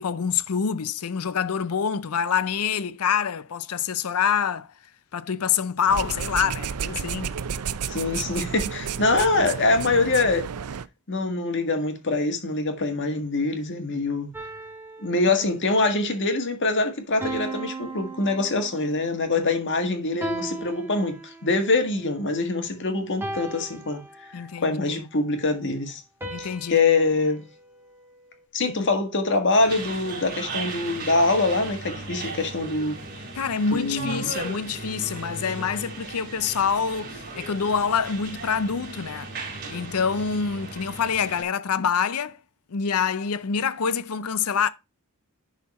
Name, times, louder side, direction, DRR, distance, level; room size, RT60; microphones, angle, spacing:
voice 1, 0.0-4.7 5.1-7.3 24.3-25.0 26.3-26.8 28.7-28.9 33.3-39.3 39.7-42.4 42.7-44.7, left 6 dB, 75° left, 0.6 m, -26 dB
sound 1, 5.9-10.9, right 7 dB, 80° right, 0.5 m, -31 dB
voice 2, 7.9-10.5 11.1-14.3 15.0-26.0 26.4-27.4 28.5-33.0 33.7-34.3, left 3 dB, 55° left, 1.7 m, -24 dB
sound 2, 14.3-15.8 17.2-19.0 20.2-21.7 23.2-24.7 26.2-28.5, right 2 dB, 10° right, 1.4 m, -37 dB
sound 3, 29.6-41.4, right 3 dB, 45° right, 2.9 m, -37 dB
11.0 x 4.1 x 4.2 m
head